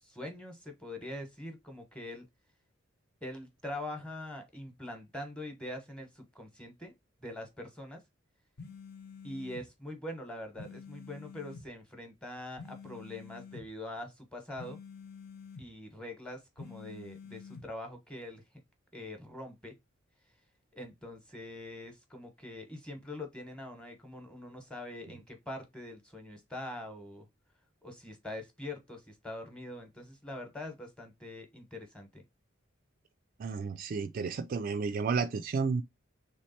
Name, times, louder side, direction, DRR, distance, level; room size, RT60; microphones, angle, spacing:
voice 1, 0.0-2.3 3.2-6.9 7.2-8.0 9.2-14.8 15.6-18.4 18.9-19.7 20.7-27.3 27.8-32.2, left 1 dB, 5° left, 1.0 m, -43 dB
sound 1, 8.6-9.7 10.6-11.7 12.6-13.7 14.6-15.7 16.6-17.7, left 5 dB, 50° left, 0.7 m, -48 dB
voice 2, 33.4-35.8, right 5 dB, 45° right, 0.3 m, -32 dB
3.4 x 3.1 x 4.2 m
head